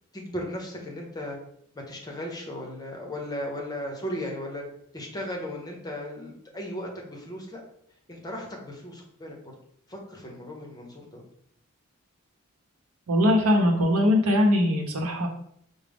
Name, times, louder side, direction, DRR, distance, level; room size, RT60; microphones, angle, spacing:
voice 1, 0.1-1.4 1.7-4.6 4.9-7.6 8.1-9.5 9.9-11.2, left 1 dB, 20° left, 0 dB, 0.7 m, -36 dB
voice 2, 13.1-15.3, left 1 dB, 90° right, 2 dB, 0.8 m, -21 dB
4.9 x 2.0 x 3.4 m, 0.69 s
head